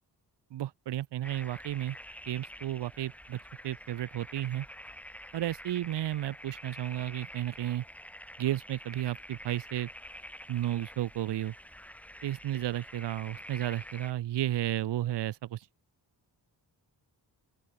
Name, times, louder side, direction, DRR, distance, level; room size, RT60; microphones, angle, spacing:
voice 1, 0.5-2.0 2.3-4.7 5.3-7.8 8.4-9.9 10.5-11.5 12.2-15.7, right 13 dB, 75° right, 0.7 m, -33 dB
sound 1, 1.2-14.1, equal, 5° left, 4.6 m, -48 dB
open air
wide cardioid pair, 125°, 42 cm